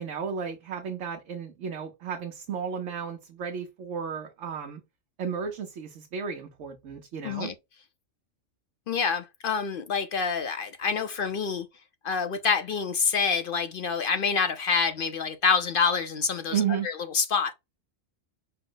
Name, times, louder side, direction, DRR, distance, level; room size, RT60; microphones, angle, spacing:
voice 1, 0.0-4.8 5.2-7.5 16.5-16.9, right 7 dB, 70° right, 1.1 m, -33 dB
voice 2, 7.2-7.5 8.9-11.7 12.0-17.5, left 5 dB, 60° left, 0.6 m, -27 dB
5.4 x 2.0 x 3.7 m
omnidirectional pair, 1.3 m